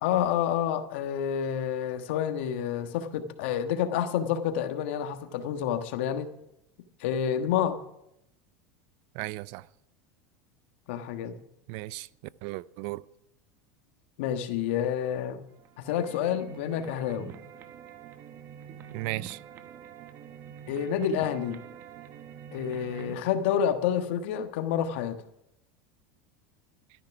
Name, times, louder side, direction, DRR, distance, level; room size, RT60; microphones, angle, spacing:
voice 1, 0.0-6.3 7.0-7.8 10.9-11.4 14.2-15.4 15.8-17.3 20.7-21.6 22.5-25.2, left 9 dB, 75° left, 1.3 m, -29 dB
voice 2, 9.1-9.7 11.7-12.1 12.4-13.1 18.9-19.4, right 19 dB, 60° right, 0.4 m, -35 dB
sound 1, 15.5-23.2, right 8 dB, 45° right, 1.0 m, -46 dB
12.5 x 10.5 x 6.0 m
supercardioid pair, 120°, 6 cm